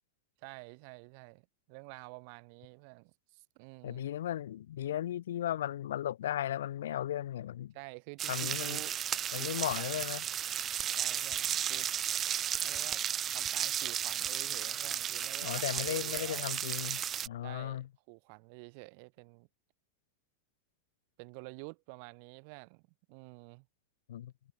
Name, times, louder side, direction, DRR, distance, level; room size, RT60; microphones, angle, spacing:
voice 1, 0.4-1.4 1.7-4.1 7.7-9.0 9.4-9.9 11.0-11.9 12.6-13.0 13.3-16.4 17.4-17.8 18.1-19.5 21.2-22.8 23.1-23.7, right 37 dB, 45° right, 2.0 m, -49 dB
voice 2, 3.8-7.7 8.3-8.8 9.3-10.2 15.4-17.9 24.1-24.3, left 11 dB, 60° left, 1.6 m, -36 dB
sound 1, 8.2-17.3, right 10 dB, 25° right, 0.5 m, -34 dB
figure-of-eight pair, 90°, 0 cm